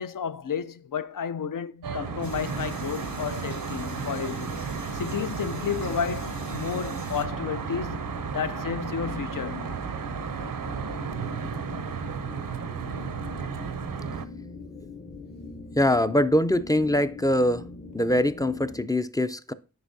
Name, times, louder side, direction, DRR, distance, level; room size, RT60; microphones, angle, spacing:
voice 1, 0.0-4.6 4.9-9.7, left 7 dB, 75° left, 0.5 m, -32 dB
Traffic noise roadway noise, 1.8-14.3, right 6 dB, 80° right, 0.5 m, -34 dB
sound 1, 2.0-18.8, left 3 dB, 35° left, 0.8 m, -42 dB
sound 2, 2.2-7.3, left 3 dB, 60° left, 0.9 m, -48 dB
voice 2, 15.8-17.7 17.9-19.5, left 1 dB, 10° left, 0.4 m, -23 dB
8.0 x 5.6 x 2.6 m
wide cardioid pair, 45°, 33 cm